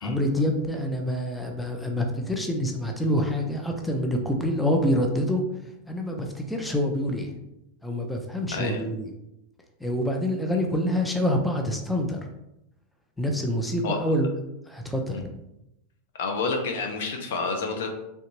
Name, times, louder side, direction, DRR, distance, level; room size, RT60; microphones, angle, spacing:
voice 1, 0.0-5.4 5.9-7.3 7.8-9.1 9.8-12.2 13.2-14.3 14.7-15.3, equal, 5° left, 2 dB, 0.5 m, -26 dB
voice 2, 8.5-8.8 13.8-14.0 15.1-15.2 16.2-17.9, left 4 dB, 75° left, 4 dB, 0.7 m, -29 dB
3.3 x 2.7 x 3.0 m, 0.88 s
hypercardioid pair, 125°, 0 cm